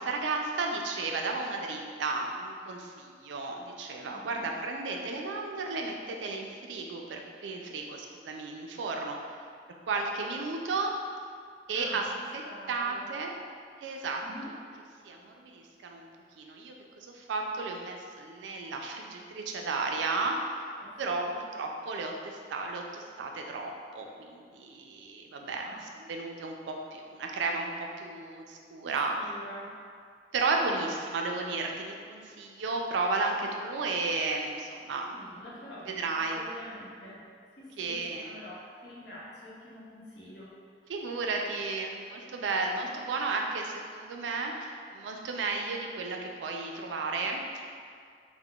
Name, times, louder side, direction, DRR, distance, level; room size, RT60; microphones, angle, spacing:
voice 1, 0.0-9.2 9.9-10.9 11.7-12.0 12.3-12.4 12.7-13.3 13.8-14.2 15.0-16.1 16.4-20.6 21.0-21.2 21.5-25.6 26.1-29.3 30.3-35.1 35.9-36.4 37.8-38.3 40.9-47.7, right 3 dB, 85° right, 2 dB, 0.3 m, -33 dB
voice 2, 4.1-4.5 11.7-12.0 12.4-13.0 13.8-14.5 20.8-21.4 25.6-25.8 29.2-29.7 35.1-37.2 37.6-40.5, left 1 dB, 70° left, -7 dB, 0.8 m, -47 dB
3.6 x 2.0 x 2.3 m, 2.1 s
head